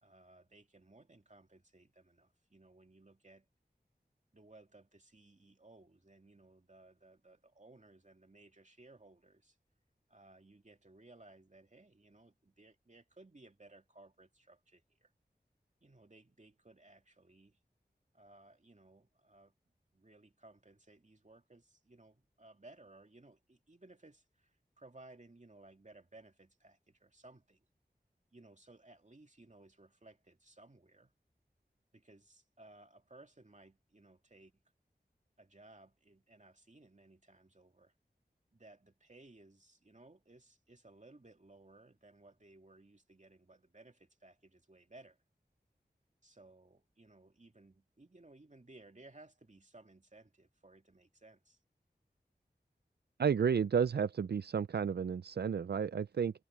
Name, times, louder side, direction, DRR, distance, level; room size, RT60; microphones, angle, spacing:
voice 1, 0.0-3.5 4.3-9.6 10.1-15.1 15.8-17.6 18.1-19.5 19.9-27.7 28.3-31.1 31.9-34.6 35.4-37.9 38.5-45.2 46.2-51.6, right 2 dB, 45° right, 2.5 m, -60 dB
voice 2, 53.2-56.3, right 7 dB, 70° right, 0.4 m, -32 dB
wide cardioid pair, 40°, 17 cm